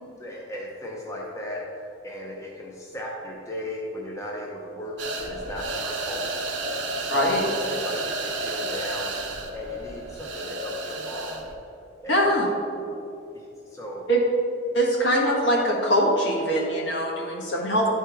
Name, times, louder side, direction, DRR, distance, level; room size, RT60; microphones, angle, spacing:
voice 1, 0.2-6.3 7.0-7.4 7.7-9.1 9.5-12.6 13.3-14.1, equal, 15° left, -2 dB, 0.6 m, -37 dB
sound 1, 5.0-11.5, right 2 dB, 65° right, 0.8 m, -31 dB
voice 2, 7.1-7.5 12.1-12.4 14.1-14.2 14.7-17.9, equal, 70° left, -2 dB, 1.4 m, -22 dB
11.0 x 4.5 x 3.4 m, 2.7 s
head